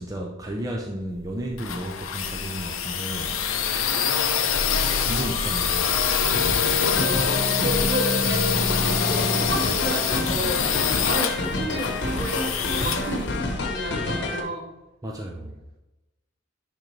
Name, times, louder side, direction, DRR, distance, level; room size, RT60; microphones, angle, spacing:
voice 1, 0.0-3.4 4.6-6.0 15.0-15.6, right 1 dB, 15° right, -1 dB, 0.5 m, -33 dB
sound 1, 1.2-13.9, left 7 dB, 85° left, 0.7 m, -25 dB
sound 2, 5.0-8.2, right 1 dB, 75° right, 2.1 m, -39 dB
sound 3, 6.2-14.4, left 1 dB, 60° left, 1.0 m, -27 dB
voice 2, 6.8-14.7, equal, 55° right, -1 dB, 1.7 m, -32 dB
10.5 x 3.8 x 3.3 m, 0.98 s
head